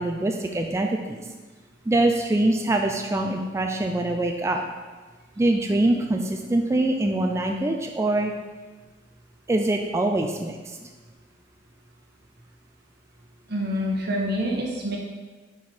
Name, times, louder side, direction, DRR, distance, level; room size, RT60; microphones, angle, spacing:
voice 1, 0.0-1.3 1.9-4.6 5.4-8.3 9.5-10.8, right 2 dB, 15° right, 2 dB, 0.3 m, -24 dB
voice 2, 13.5-15.0, equal, 60° right, -1 dB, 1.1 m, -26 dB
4.7 x 4.3 x 5.3 m, 1.3 s
head